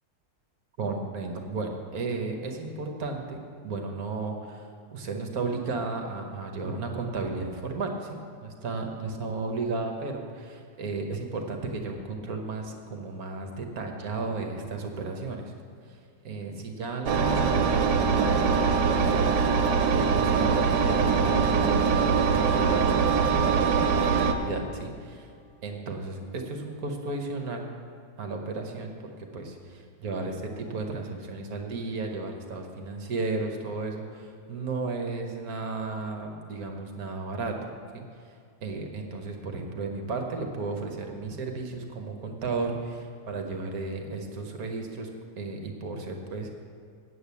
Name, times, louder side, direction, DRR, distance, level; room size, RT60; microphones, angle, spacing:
voice 1, 0.8-15.5 15.9-16.0 16.2-25.3 25.6-27.7 28.2-28.9 29.3-37.6 37.9-38.0 38.6-45.1 45.4-46.6, right 3 dB, 55° right, 3 dB, 1.3 m, -34 dB
Engine, 17.1-24.3, right 5 dB, 75° right, 1.3 m, -23 dB
8.6 x 7.5 x 8.3 m, 2.3 s
omnidirectional pair, 2.0 m